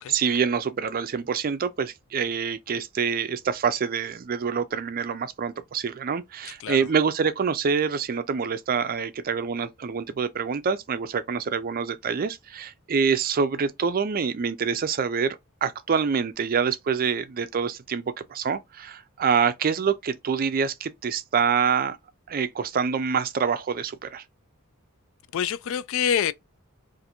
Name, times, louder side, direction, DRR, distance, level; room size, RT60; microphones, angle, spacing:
voice 1, 0.0-22.0 22.3-24.2, right 6 dB, 45° right, 0.4 m, -26 dB
voice 2, 6.4-6.9 25.3-26.3, left 8 dB, 65° left, 0.3 m, -27 dB
2.6 x 2.5 x 4.2 m
head